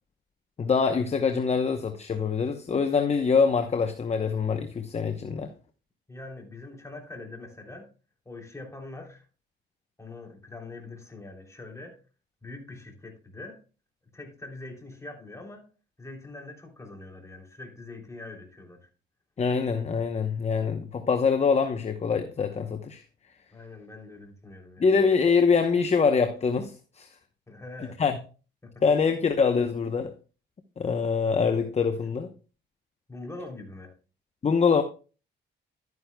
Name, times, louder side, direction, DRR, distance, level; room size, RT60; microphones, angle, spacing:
voice 1, 0.6-5.5 19.4-23.0 24.8-27.1 28.0-28.2 28.8-30.1 30.8-32.3 34.4-34.8, left 5 dB, 35° left, 0.9 m, -24 dB
voice 2, 6.1-7.9 8.2-9.3 10.0-12.0 12.4-13.6 14.1-15.6 16.0-18.9 23.5-24.9 27.5-28.0 28.6-28.7 33.1-33.9, left 2 dB, 15° left, 3.1 m, -43 dB
12.0 x 9.4 x 2.2 m
cardioid pair, 90°, 20 cm